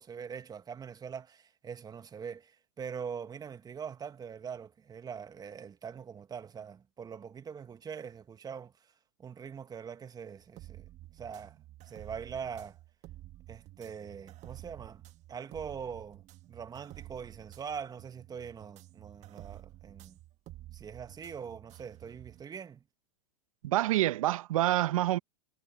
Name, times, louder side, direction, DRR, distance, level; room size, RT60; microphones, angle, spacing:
voice 1, 0.0-8.9 9.2-10.9 11.1-11.6 11.8-12.8 13.5-15.0 15.3-20.2 20.7-22.8, right 7 dB, 20° right, 1.7 m, -43 dB
sound 1, 10.4-22.4, right 15 dB, 40° right, 1.5 m, -51 dB
voice 2, 23.6-25.2, right 15 dB, 75° right, 0.8 m, -27 dB
hypercardioid pair, 105°, 18 cm